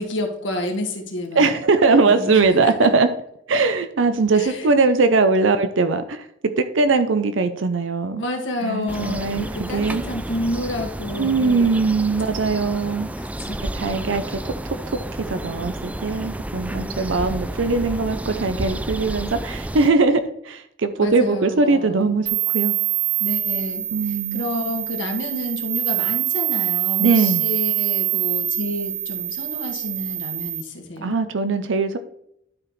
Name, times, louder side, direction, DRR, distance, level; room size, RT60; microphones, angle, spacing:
voice 1, 0.0-1.5 2.0-2.9 4.3-4.7 8.2-11.7 13.2-14.3 16.7-16.9 21.0-22.2 23.2-31.2, left 1 dB, 75° left, 1 dB, 1.6 m, -30 dB
voice 2, 1.4-3.1 3.5-6.3 6.6-8.2 8.6-10.0 11.2-13.1 13.7-14.5 15.3-22.8 23.9-24.5 27.0-27.5 31.0-32.0, right 3 dB, 90° right, 9 dB, 0.6 m, -20 dB
sound 1, 8.9-19.9, right 1 dB, 10° right, 0.3 m, -31 dB
sound 2, 22.3-30.6, right 12 dB, 35° right, 1.2 m, -25 dB
12.0 x 4.9 x 3.2 m, 0.75 s
head